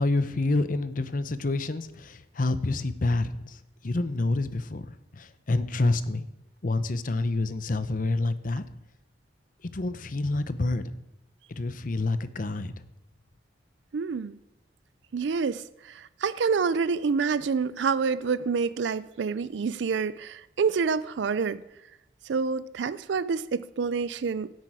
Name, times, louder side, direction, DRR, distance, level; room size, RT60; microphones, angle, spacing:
voice 1, 0.0-4.9 5.1-6.3 6.6-8.6 9.7-10.9 11.5-12.7, left 2 dB, 50° left, 0.7 m, -28 dB
voice 2, 13.9-14.4 15.1-21.6 22.3-24.5, right 5 dB, 75° right, 0.4 m, -27 dB
16.0 x 8.5 x 4.9 m
head